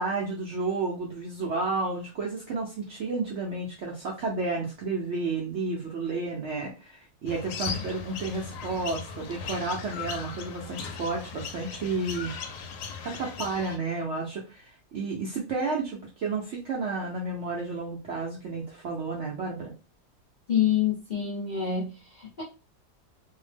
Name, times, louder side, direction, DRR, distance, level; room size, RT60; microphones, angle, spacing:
voice 1, 0.0-12.3 13.0-19.7, right 3 dB, 65° right, 0.7 m, -31 dB
sound 1, 7.3-13.8, left 6 dB, 80° left, 1.1 m, -38 dB
voice 2, 20.5-22.4, left 9 dB, 35° left, 0.8 m, -27 dB
2.8 x 2.0 x 3.2 m
omnidirectional pair, 1.7 m